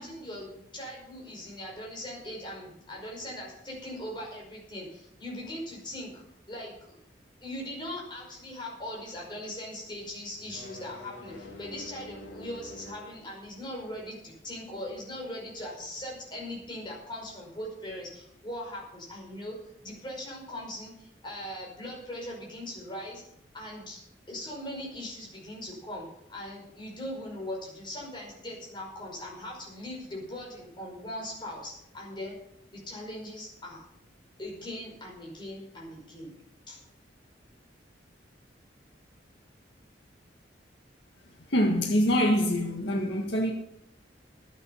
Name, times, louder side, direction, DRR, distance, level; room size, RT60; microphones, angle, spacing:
voice 1, 0.0-7.0 7.4-23.2 23.5-24.0 24.3-32.4 32.7-33.8 34.4-36.3 36.7-36.8, left 1 dB, 25° left, 5.3 m, -40 dB
sound 1, 10.4-13.2, left 1 dB, 90° left, 3.1 m, -46 dB
voice 2, 41.5-43.5, equal, 65° left, 1.8 m, -25 dB
11.5 x 9.7 x 7.1 m
head